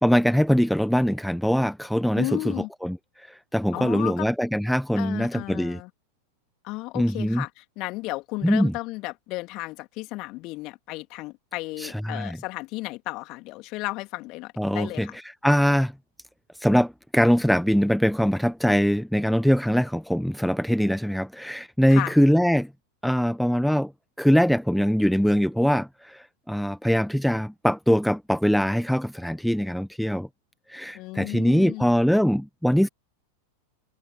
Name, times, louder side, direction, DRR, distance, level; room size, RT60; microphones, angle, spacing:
voice 1, 0.0-2.5 2.8-5.8 6.9-7.4 8.4-8.7 11.8-12.4 14.6-15.9 16.6-22.7 23.0-23.9 24.2-30.3 30.7-32.9, equal, ahead, 1.2 m, -22 dB
voice 2, 2.2-2.7 3.7-4.3 5.0-5.9 6.6-15.2 21.9-22.1 30.9-31.9, left 22 dB, 40° left, 3.2 m, -34 dB
figure-of-eight pair, 90°, 0 cm